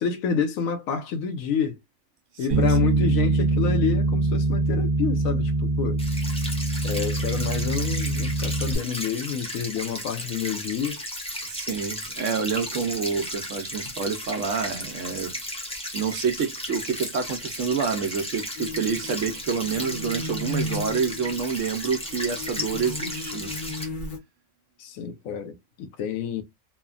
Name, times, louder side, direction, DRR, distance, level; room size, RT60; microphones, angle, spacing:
voice 1, 0.0-1.8 2.4-6.0 6.8-11.0 24.8-26.4, left 7 dB, 80° left, 1.0 m, -29 dB
voice 2, 2.3-2.9 11.5-15.4 15.9-23.5, right 6 dB, 70° right, 0.9 m, -28 dB
Bass guitar, 2.5-8.8, right 2 dB, 45° right, 0.8 m, -24 dB
sound 1, 6.0-23.8, equal, 5° left, 0.5 m, -35 dB
sound 2, 18.6-24.2, left 2 dB, 45° left, 0.8 m, -35 dB
3.2 x 2.1 x 2.3 m
omnidirectional pair, 1.4 m